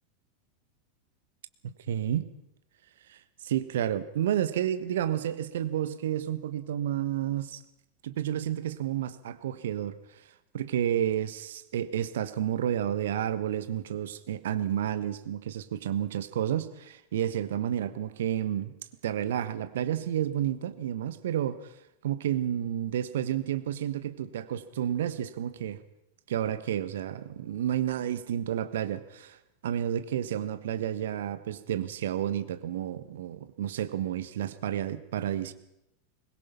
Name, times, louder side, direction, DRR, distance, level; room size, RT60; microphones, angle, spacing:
voice 1, 1.6-2.3 3.1-7.6 8.0-9.9 10.5-18.7 19.0-21.6 22.0-25.8 26.3-29.4 29.6-35.5, right 10 dB, 65° right, 13 dB, 1.3 m, -31 dB
22.0 x 20.0 x 5.8 m, 0.84 s
figure-of-eight pair, 90°, 0 cm